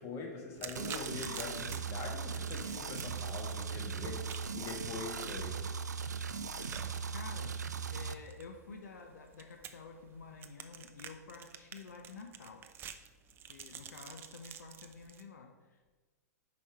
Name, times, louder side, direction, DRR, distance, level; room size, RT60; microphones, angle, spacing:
voice 1, 0.0-5.6 13.7-13.8, left 4 dB, 35° left, 2 dB, 1.4 m, -43 dB
sound 1, 0.6-15.2, right 8 dB, 25° right, 0.4 m, -50 dB
sound 2, 0.8-8.1, right 5 dB, 90° right, 0.4 m, -39 dB
voice 2, 7.1-7.5 7.9-12.6 13.5-15.9, left 4 dB, 75° left, 3 dB, 0.7 m, -50 dB
5.2 x 4.9 x 4.6 m, 1.3 s
hypercardioid pair, 110°, 9 cm